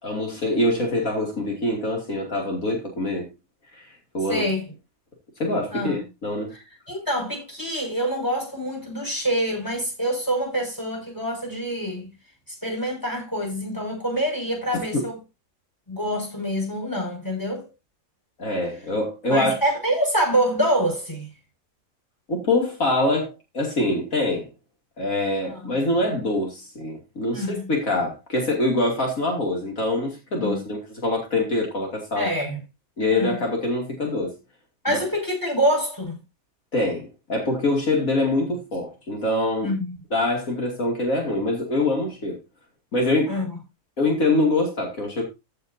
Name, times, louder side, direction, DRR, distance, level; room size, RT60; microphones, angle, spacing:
voice 1, 0.0-3.3 3.7-3.9 4.1-4.4 5.4-6.5 14.9-15.0 18.4-19.5 22.3-24.5 25.0-32.3 33.0-34.3 34.9-35.0 36.7-39.7 40.1-42.4 42.9-43.3 44.0-45.2, left 2 dB, 75° left, 3.0 m, -24 dB
voice 2, 4.3-4.7 5.7-6.0 6.9-12.1 12.5-15.2 15.9-17.7 19.3-21.3 25.4-25.7 27.3-27.7 30.4-30.6 32.1-32.6 33.1-33.4 34.8-36.2 39.6-40.0 43.3-43.5, equal, 15° left, 6.3 m, -26 dB
15.0 x 7.8 x 2.7 m
omnidirectional pair, 1.4 m